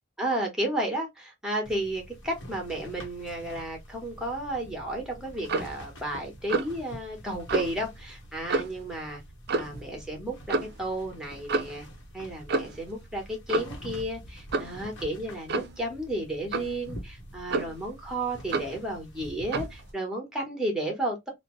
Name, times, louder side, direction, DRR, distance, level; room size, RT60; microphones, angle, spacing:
voice 1, 0.2-9.2 9.5-11.9 12.1-21.3, right 1 dB, 5° right, 1.0 m, -33 dB
sound 1, 1.6-19.9, equal, 60° left, 0.9 m, -46 dB
Clock, 5.5-5.8 6.5-6.8 7.5-7.7 8.5-8.8 9.5-9.8 10.5-10.7 11.5-11.8 12.5-12.8 13.5-13.8 14.5-14.8 15.5-15.8 16.5-16.8 17.5-17.9 18.5-18.8 19.5-19.8, right 3 dB, 55° right, 0.4 m, -29 dB
2.8 x 2.0 x 3.0 m
head